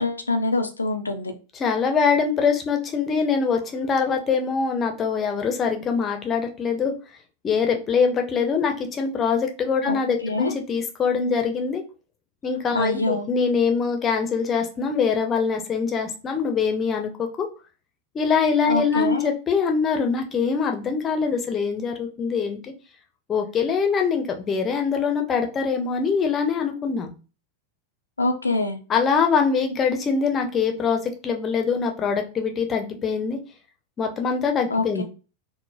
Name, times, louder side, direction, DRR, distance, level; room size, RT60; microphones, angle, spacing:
voice 1, 0.0-1.3 9.9-10.5 12.7-13.3 18.7-19.2 28.2-28.8 34.7-35.0, left 2 dB, 80° left, 5 dB, 0.4 m, -25 dB
voice 2, 1.6-6.9 7.4-11.8 12.4-17.5 18.1-22.7 23.3-27.1 28.9-33.4 34.0-35.0, left 5 dB, 25° left, 4 dB, 0.6 m, -23 dB
3.7 x 2.1 x 2.6 m, 0.34 s
figure-of-eight pair, 90°, 0 cm